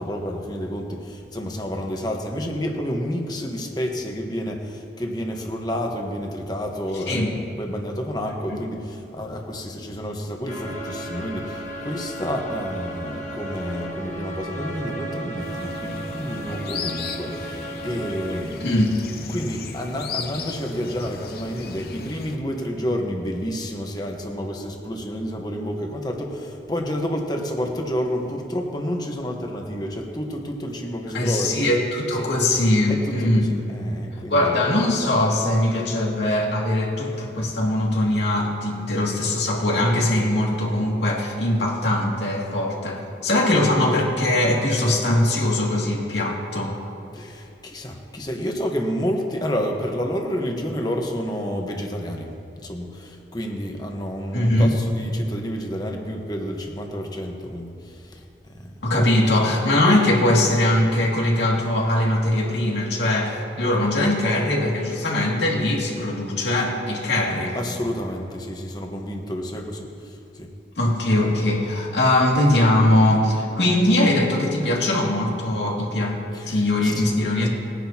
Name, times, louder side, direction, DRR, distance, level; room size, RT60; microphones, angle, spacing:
voice 1, 0.0-18.7 19.3-31.7 32.2-32.3 32.9-34.6 47.1-52.3 52.6-58.2 58.5-58.8 67.5-70.5 76.3-77.0, equal, 25° left, 1 dB, 1.2 m, -29 dB
sound 1, 10.5-18.4, right 1 dB, 40° left, 1.4 m, -34 dB
sound 2, 15.4-22.4, left 5 dB, 60° left, 0.8 m, -36 dB
voice 2, 18.6-19.0 31.1-33.5 34.3-46.7 54.3-54.7 58.8-67.6 70.8-76.2 76.5-77.5, left 1 dB, 85° left, -3 dB, 2.4 m, -21 dB
20.5 x 10.0 x 2.9 m, 2.8 s
head